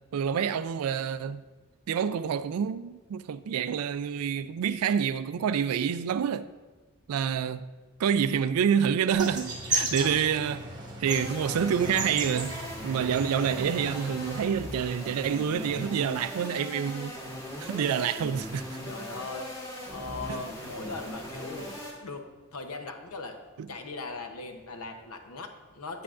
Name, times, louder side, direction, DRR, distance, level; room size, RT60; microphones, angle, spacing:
voice 1, 0.1-1.4 1.9-6.5 7.1-7.7 8.0-10.6 11.0-17.2 17.6-18.7 20.3-20.4 23.6-23.7, right 7 dB, 75° right, 0.3 m, -27 dB
sound 1, 9.1-14.4, right 2 dB, 20° right, 1.3 m, -35 dB
voice 2, 9.9-10.2 18.9-19.5 19.9-22.2 22.5-23.4 23.7-26.0, left 3 dB, 70° left, 0.8 m, -39 dB
sound 2, 11.1-21.9, equal, 15° left, 1.3 m, -39 dB
8.5 x 8.1 x 2.5 m
head